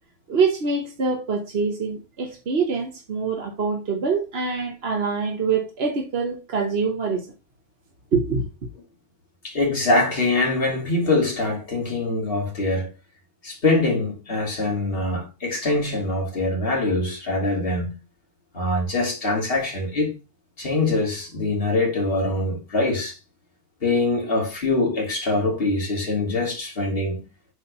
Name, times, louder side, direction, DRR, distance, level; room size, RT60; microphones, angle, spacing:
voice 1, 0.3-7.3 8.1-8.7, right 4 dB, 60° right, 1.3 m, -25 dB
voice 2, 9.4-12.9 13.4-17.9 18.5-20.1 20.6-23.2 23.8-27.2, left 2 dB, 50° left, 2.9 m, -23 dB
7.8 x 4.3 x 5.4 m
omnidirectional pair, 1.2 m